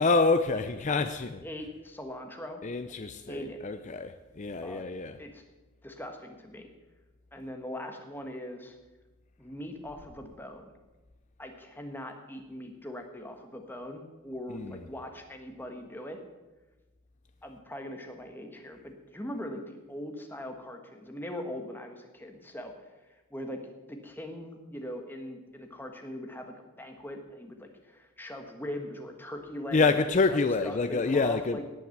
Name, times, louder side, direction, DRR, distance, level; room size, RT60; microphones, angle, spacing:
voice 1, 0.0-1.4 2.6-5.2 14.5-14.8 29.7-31.6, left 3 dB, 35° left, 0.5 m, -27 dB
voice 2, 1.4-2.6 2.9-3.0 3.3-3.6 4.6-4.8 5.2-5.4 5.8-6.7 7.3-8.8 9.4-10.7 11.4-16.2 17.4-22.7 23.3-23.6 23.9-30.0 30.3-31.6, left 1 dB, 10° left, 1.4 m, -41 dB
17.5 x 6.0 x 7.9 m
head